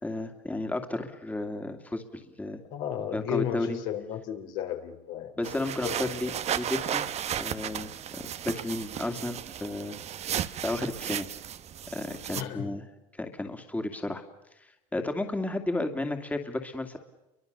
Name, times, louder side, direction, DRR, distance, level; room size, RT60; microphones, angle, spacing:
voice 1, 0.0-2.6 3.1-3.8 5.4-7.1 7.4-11.3 11.9-12.8 13.1-14.2 14.6-17.0, left 2 dB, 10° left, 5 dB, 2.5 m, -33 dB
voice 2, 2.7-5.3 5.8-6.1 12.3-12.8, left 11 dB, 75° left, 4 dB, 3.8 m, -34 dB
sound 1, 5.4-12.4, right 10 dB, 40° right, 1.1 m, -34 dB
29.5 x 24.0 x 6.9 m, 0.98 s
supercardioid pair, 100°, 16 cm